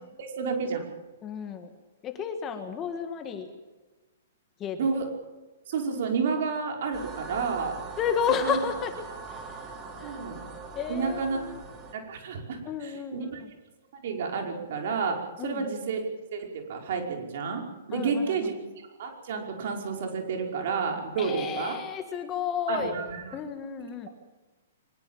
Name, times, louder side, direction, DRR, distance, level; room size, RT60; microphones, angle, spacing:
voice 1, 0.2-0.9 4.8-5.1 5.7-7.8 8.4-8.6 10.0-10.4 10.9-11.4 11.9-13.4 13.9-16.0 16.3-17.6 17.9-21.8 22.7-23.4, right 5 dB, 50° right, 3 dB, 5.3 m, -30 dB
voice 2, 1.2-1.7 2.0-3.5 4.6-4.9 8.0-8.9 9.3-9.7 10.0-10.2 10.8-11.6 12.7-13.5 15.4-15.7 17.9-18.4 21.2-23.0 23.3-24.1, left 7 dB, 15° left, 7 dB, 1.7 m, -32 dB
sound 1, 6.9-11.9, right 4 dB, 20° right, 3.2 m, -42 dB
23.5 x 21.0 x 7.4 m, 1.2 s
hypercardioid pair, 165°, 0 cm